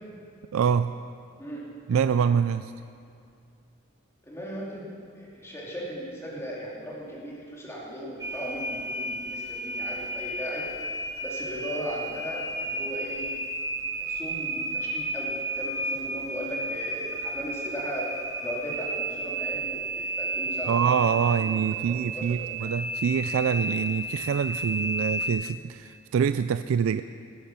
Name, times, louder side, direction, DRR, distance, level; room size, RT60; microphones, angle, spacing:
voice 1, 0.5-0.9 1.9-2.7 20.7-27.0, right 7 dB, 90° right, 12 dB, 0.3 m, -25 dB
voice 2, 4.2-4.8 5.1-10.7 11.2-13.3 13.9-20.8 21.2-22.7, equal, 15° left, -5 dB, 2.8 m, -37 dB
sound 1, 8.2-25.3, right 1 dB, 15° right, 1.2 m, -32 dB
19.0 x 10.0 x 5.9 m, 2.4 s
head